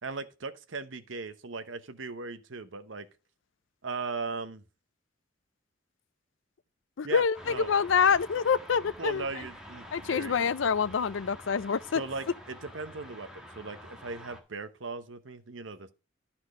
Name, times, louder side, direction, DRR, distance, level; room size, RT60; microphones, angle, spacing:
voice 1, 0.0-3.1 3.8-4.6 7.0-7.7 8.8-10.5 11.9-15.9, right 4 dB, 75° right, 0.9 m, -38 dB
voice 2, 7.0-9.2 9.9-12.0, left 6 dB, 70° left, 0.5 m, -26 dB
sound 1, 7.3-14.4, equal, 5° right, 1.6 m, -48 dB
12.0 x 4.4 x 4.8 m
head